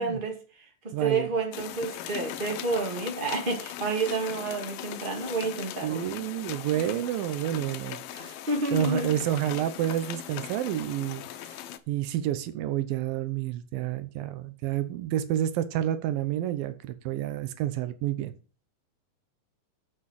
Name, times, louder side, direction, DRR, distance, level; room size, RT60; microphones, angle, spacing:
voice 1, 0.0-6.1 8.2-9.1, right 3 dB, 20° right, 1.8 m, -30 dB
voice 2, 0.9-1.3 5.8-8.4 8.7-11.6 11.9-18.3, right 12 dB, 80° right, 2.5 m, -29 dB
sound 1, 1.5-11.8, left 12 dB, 80° left, 2.5 m, -40 dB
7.7 x 6.3 x 7.4 m
omnidirectional pair, 4.2 m